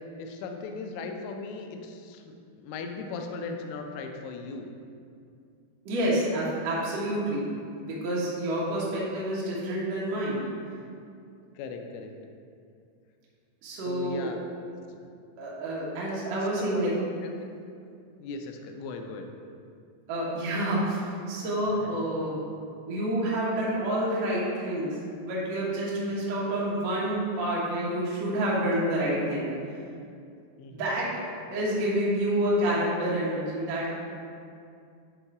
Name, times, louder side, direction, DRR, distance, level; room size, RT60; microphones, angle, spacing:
voice 1, 0.2-4.7 7.0-7.1 7.5-7.6 11.6-12.1 13.7-14.4 14.9-15.1 16.7-17.0 17.2-17.3 18.2-19.3 21.8-21.9 30.6-30.8, left 4 dB, 85° left, 4 dB, 2.8 m, -38 dB
voice 2, 5.8-7.5 7.8-10.5 13.6-14.3 15.4-16.9 20.1-22.4 22.9-25.0 25.2-29.5 30.7-31.1 31.5-33.9, right 1 dB, 65° right, -6 dB, 1.7 m, -28 dB
9.6 x 3.2 x 4.7 m, 2.4 s
omnidirectional pair, 5.1 m